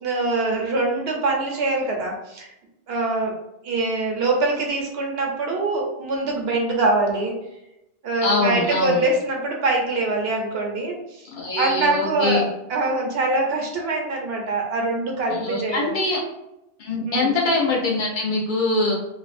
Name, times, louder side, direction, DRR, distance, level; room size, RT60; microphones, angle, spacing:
voice 1, 0.0-2.5 2.9-3.3 3.6-7.3 8.0-12.4 12.7-16.0 17.1-17.3, right 2 dB, 75° right, 1 dB, 0.8 m, -24 dB
voice 2, 8.2-9.0 11.3-12.5 15.3-16.2 16.8-18.9, left 2 dB, 55° left, -3 dB, 0.7 m, -23 dB
2.5 x 2.0 x 2.4 m, 0.90 s
omnidirectional pair, 1.1 m